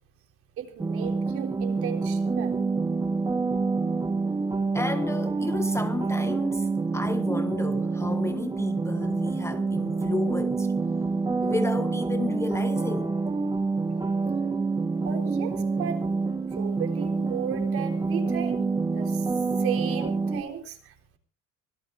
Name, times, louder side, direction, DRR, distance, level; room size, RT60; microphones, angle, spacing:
voice 1, 0.6-2.6 15.0-16.0 16.6-19.3 19.6-21.2, right 9 dB, 45° right, 4.0 m, -35 dB
sound 1, 0.8-20.4, right 4 dB, 10° right, 1.3 m, -27 dB
voice 2, 4.7-10.7 11.4-13.1, left 3 dB, 10° left, 0.7 m, -32 dB
25.0 x 17.5 x 2.6 m
cardioid pair, 180°, 31 cm